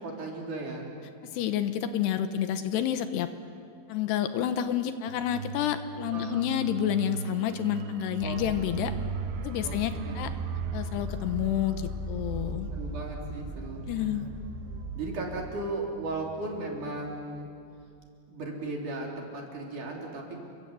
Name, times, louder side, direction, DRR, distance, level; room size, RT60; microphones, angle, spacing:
voice 1, 0.0-0.9 6.1-6.4 8.2-8.4 9.6-9.7 10.0-10.2 12.3-14.2 14.9-17.5 18.3-20.4, right 2 dB, 50° right, 0 dB, 4.5 m, -36 dB
voice 2, 1.2-3.3 3.9-8.9 9.4-10.3 10.7-12.7 13.9-14.3, left 10 dB, 80° left, 9 dB, 3.0 m, -29 dB
sound 1, 5.1-17.4 17.7-17.9, right 7 dB, 85° right, 3.2 m, -39 dB
sound 2, 8.2-15.6, left 2 dB, 60° left, 7.2 m, -39 dB
29.5 x 22.5 x 8.2 m, 2.4 s
omnidirectional pair, 5.0 m